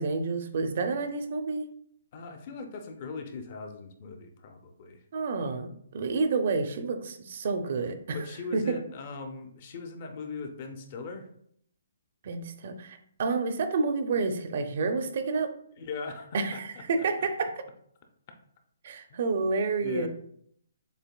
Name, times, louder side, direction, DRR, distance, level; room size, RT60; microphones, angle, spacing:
voice 1, 0.0-1.7 5.1-8.2 8.5-8.7 12.2-15.5 16.3-17.5 18.8-20.1, right 4 dB, 45° right, 8 dB, 0.4 m, -29 dB
voice 2, 2.1-5.0 8.1-11.3 15.8-16.6 19.1-19.2 19.8-20.1, left 4 dB, 35° left, 5 dB, 0.5 m, -39 dB
6.6 x 2.5 x 2.2 m, 0.66 s
hypercardioid pair, 165°, 0 cm